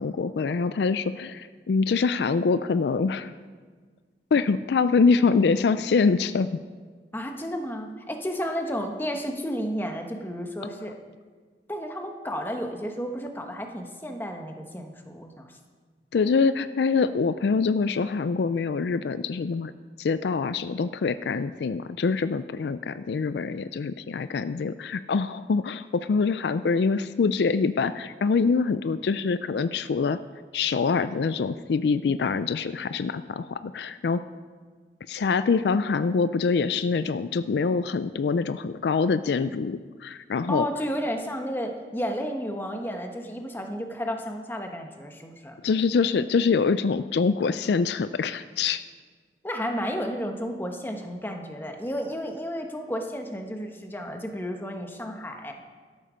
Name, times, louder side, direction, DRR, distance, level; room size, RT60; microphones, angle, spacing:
voice 1, 0.0-3.3 4.3-6.6 16.1-19.7 20.0-30.2 30.5-34.2 35.1-40.7 45.6-48.8, left 4 dB, 70° left, 13 dB, 0.4 m, -25 dB
voice 2, 7.1-11.0 11.7-15.6 40.5-45.6 49.4-55.5, equal, 10° left, 3 dB, 1.2 m, -32 dB
13.0 x 12.0 x 5.1 m, 1.5 s
head